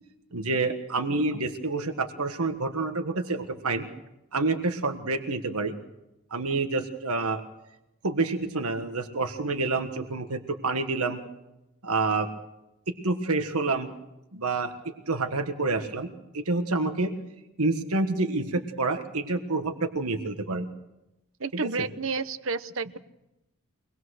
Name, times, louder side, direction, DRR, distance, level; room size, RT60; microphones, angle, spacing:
voice 1, 0.3-3.9 4.3-5.8 6.3-7.4 8.0-11.2 11.8-12.3 12.9-13.9 14.3-14.7 15.1-17.1 17.6-20.7 21.5-21.7, right 3 dB, 90° right, 7 dB, 1.6 m, -28 dB
voice 2, 1.1-1.4 21.4-23.0, right 4 dB, 65° right, 13 dB, 1.0 m, -31 dB
24.5 x 20.0 x 6.5 m, 0.90 s
head